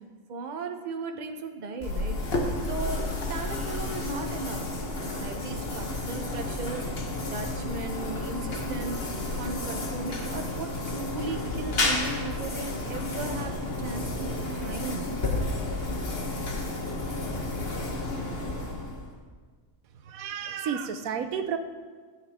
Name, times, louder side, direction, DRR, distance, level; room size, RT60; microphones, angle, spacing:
voice 1, 0.3-2.2 2.6-4.7 5.0-6.9 7.3-15.1, right 3 dB, 40° right, 5 dB, 0.9 m, -37 dB
sound 1, 1.8-19.2, left 2 dB, 45° left, 1.5 m, -31 dB
voice 2, 20.1-21.6, right 7 dB, 90° right, 8 dB, 1.2 m, -31 dB
16.0 x 8.6 x 3.6 m, 1.5 s
omnidirectional pair, 1.4 m